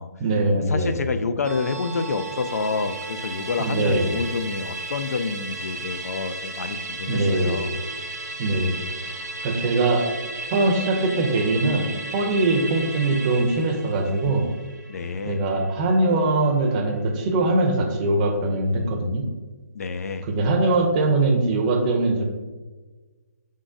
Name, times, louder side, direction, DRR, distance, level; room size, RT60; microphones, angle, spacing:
voice 1, 0.2-1.0 3.6-4.2 7.1-7.6 8.4-8.7 9.4-10.1 10.5-14.5 15.2-19.3 20.2-22.2, right 2 dB, 25° right, 3 dB, 0.6 m, -22 dB
voice 2, 0.7-7.8 9.1-9.3 14.9-15.4 19.7-20.2, left 4 dB, 60° left, 9 dB, 0.4 m, -28 dB
Musical instrument, 1.4-16.1 16.4-16.5, right 2 dB, 85° right, 0.9 m, -35 dB
5.0 x 3.7 x 2.5 m, 1.3 s
hypercardioid pair, 150°, 9 cm